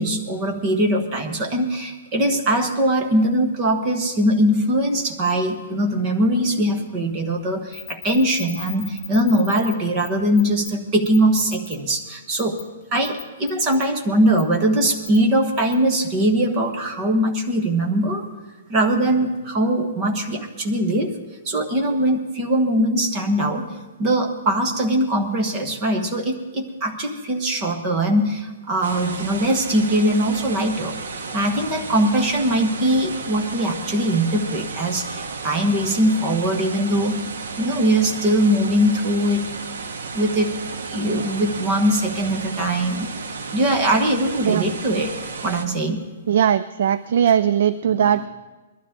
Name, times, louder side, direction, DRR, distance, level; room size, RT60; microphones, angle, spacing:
voice 1, 0.0-12.6 12.9-18.2 18.7-21.1 21.4-23.6 24.0-31.0 31.3-37.2 37.6-39.5 40.1-40.5 40.9-43.1 43.5-45.1 45.4-46.0 47.8-48.0, right 1 dB, 20° right, 3 dB, 1.3 m, -21 dB
sound 1, 7.7-9.7 10.0-10.1 10.4-10.7 11.1-11.8 12.4-12.6 13.0-13.8 14.4-14.5 15.0-15.2 15.6-15.7, left 11 dB, 15° left, 1.0 m, -36 dB
sound 2, 28.8-45.7, right 4 dB, 80° right, 1.5 m, -33 dB
voice 2, 46.3-48.3, right 9 dB, 45° right, 14 dB, 0.3 m, -19 dB
21.5 x 12.0 x 3.7 m, 1.2 s
hypercardioid pair, 175°, 0 cm